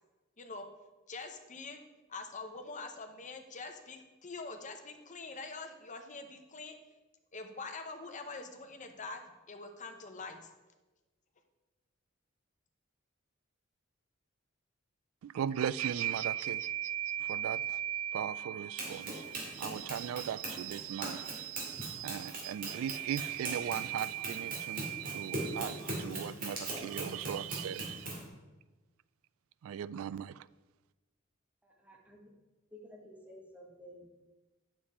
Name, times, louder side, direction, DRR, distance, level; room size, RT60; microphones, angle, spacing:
voice 1, 0.4-0.7 1.1-1.8 2.1-6.8 7.3-9.2 9.5-10.5, left 3 dB, 40° left, 0.9 m, -44 dB
voice 2, 15.2-28.1 29.6-30.4, right 10 dB, 80° right, 0.3 m, -37 dB
Run, 18.8-28.3, right 2 dB, 45° right, 2.4 m, -40 dB
voice 3, 31.6-32.3 32.7-34.2, equal, 5° right, 1.3 m, -53 dB
8.7 x 6.8 x 4.3 m
head